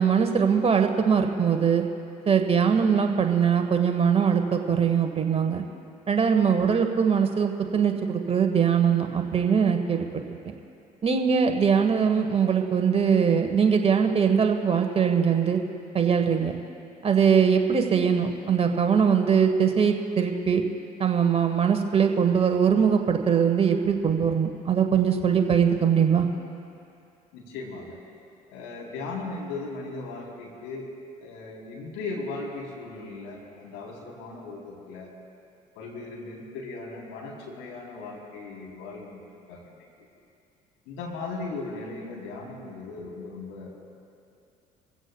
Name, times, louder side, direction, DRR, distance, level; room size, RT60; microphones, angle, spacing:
voice 1, 0.0-1.8 2.3-5.6 6.1-10.1 10.4-10.5 11.0-15.6 15.9-16.6 17.0-20.6 21.0-26.3, right 7 dB, 30° right, 5 dB, 1.3 m, -22 dB
voice 2, 27.3-28.0 28.5-30.9 31.2-35.1 35.8-39.2 39.5-40.1 40.9-43.7, left 3 dB, 65° left, -3 dB, 3.6 m, -37 dB
25.0 x 16.0 x 2.3 m, 2.6 s
hypercardioid pair, 60°, 20 cm